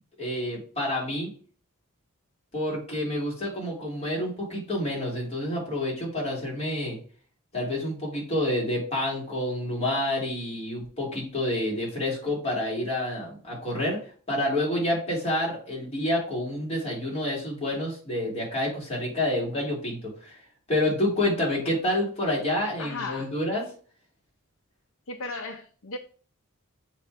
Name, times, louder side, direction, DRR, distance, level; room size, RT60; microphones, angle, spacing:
voice 1, 0.2-1.3 2.5-7.0 7.5-14.0 14.3-20.4 20.7-23.6, left 1 dB, 30° left, 3.1 m, -28 dB
voice 2, 22.8-23.3 25.1-26.0, left 3 dB, 65° left, 0.7 m, -35 dB
7.0 x 3.2 x 4.9 m
head